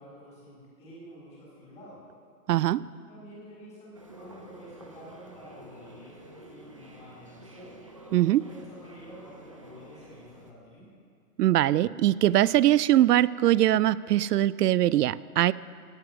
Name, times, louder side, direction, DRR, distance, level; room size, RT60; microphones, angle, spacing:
voice 1, 0.0-2.0 2.9-7.7 8.3-10.8, equal, 15° left, -7 dB, 4.0 m, -49 dB
voice 2, 2.5-2.9 8.1-8.4 11.4-15.5, right 13 dB, 80° right, 20 dB, 0.5 m, -22 dB
sound 1, 3.9-10.5, right 1 dB, 20° right, 0.5 m, -49 dB
16.5 x 9.3 x 6.0 m, 2.3 s
hypercardioid pair, 170°, 47 cm